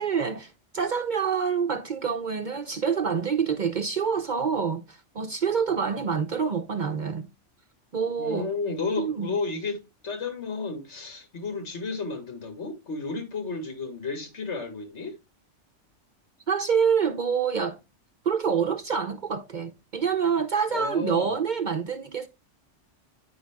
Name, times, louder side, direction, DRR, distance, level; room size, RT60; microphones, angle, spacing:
voice 1, 0.0-7.3 7.9-8.5 9.0-9.3 16.5-17.8 18.2-22.3, right 6 dB, 50° right, 0.7 m, -27 dB
voice 2, 8.2-15.2 20.7-21.4, left 4 dB, 70° left, 2.1 m, -32 dB
9.4 x 5.4 x 3.4 m
omnidirectional pair, 1.2 m